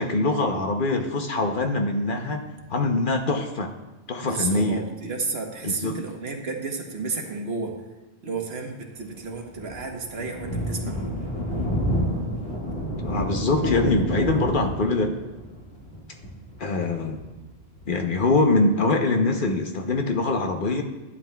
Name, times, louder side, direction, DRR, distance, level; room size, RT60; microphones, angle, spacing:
voice 1, 0.0-2.4 2.7-3.7 4.1-4.8 5.6-5.9 13.0-15.1 16.6-17.2 17.9-20.8, left 2 dB, 55° left, 4 dB, 0.8 m, -23 dB
voice 2, 4.2-7.7 8.2-11.0, right 4 dB, 70° right, 2 dB, 1.3 m, -32 dB
Thunder, 9.1-18.3, equal, 90° left, 2.2 m, -30 dB
11.0 x 9.6 x 2.3 m, 1.1 s
omnidirectional pair, 1.1 m